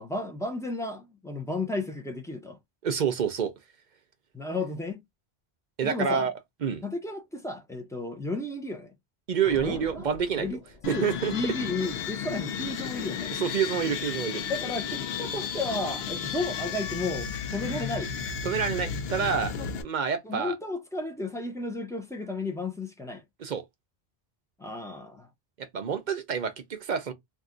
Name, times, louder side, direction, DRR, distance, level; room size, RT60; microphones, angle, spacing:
voice 1, 0.0-2.6 4.3-5.0 5.8-6.3 6.8-8.9 9.6-10.1 10.4-13.3 14.4-18.1 19.5-19.7 20.2-23.2 24.6-25.3, left 2 dB, 5° left, 0.5 m, -33 dB
voice 2, 2.8-3.5 5.8-6.3 6.6-6.8 9.3-10.6 10.9-11.3 13.4-14.4 18.4-19.5 19.8-20.6 23.4-23.6 25.6-27.1, right 7 dB, 55° right, 0.7 m, -28 dB
sound 1, 9.4-11.4, left 5 dB, 50° left, 0.6 m, -44 dB
sound 2, 10.8-19.8, left 7 dB, 80° left, 0.8 m, -33 dB
2.7 x 2.2 x 3.7 m
omnidirectional pair, 1.0 m